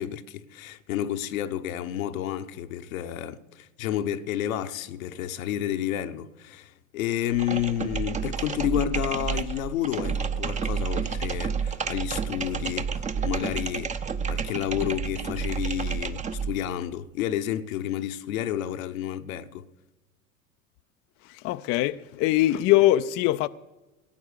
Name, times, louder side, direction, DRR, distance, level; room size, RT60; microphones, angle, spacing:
voice 1, 0.0-13.9 14.3-19.6, left 11 dB, 70° left, 0.9 m, -30 dB
sound 1, 7.3-16.6, right 6 dB, 15° right, 0.6 m, -30 dB
voice 2, 21.3-23.5, left 15 dB, 35° left, 0.4 m, -22 dB
17.0 x 8.7 x 6.7 m
hypercardioid pair, 85°, 43 cm